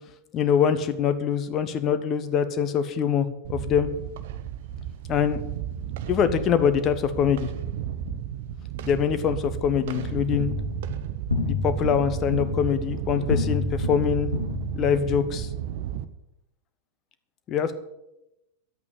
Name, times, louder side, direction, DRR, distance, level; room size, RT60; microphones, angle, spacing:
voice 1, 0.3-3.9 5.1-5.4 6.1-7.5 8.8-10.5 11.4-14.3 14.7-15.5 17.5-17.7, left 8 dB, 30° left, 11 dB, 1.2 m, -24 dB
sound 1, 3.4-16.0, right 9 dB, 55° right, 0.8 m, -33 dB
sound 2, 9.9-15.2, left 3 dB, 75° left, 1.7 m, -30 dB
11.0 x 8.6 x 8.7 m, 0.91 s
figure-of-eight pair, 90°, 0 cm